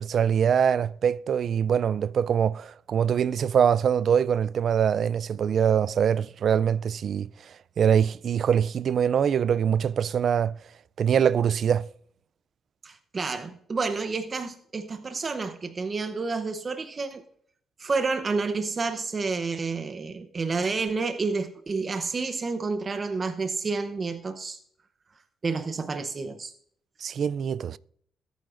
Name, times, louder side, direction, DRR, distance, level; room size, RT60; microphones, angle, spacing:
voice 1, 0.0-10.6 11.0-11.9 27.0-27.8, right 8 dB, 55° right, 0.3 m, -23 dB
voice 2, 12.8-17.2 17.8-24.6 25.4-26.5, right 4 dB, 35° right, 0.8 m, -29 dB
21.5 x 9.2 x 2.5 m
cardioid pair, 90°, 0 cm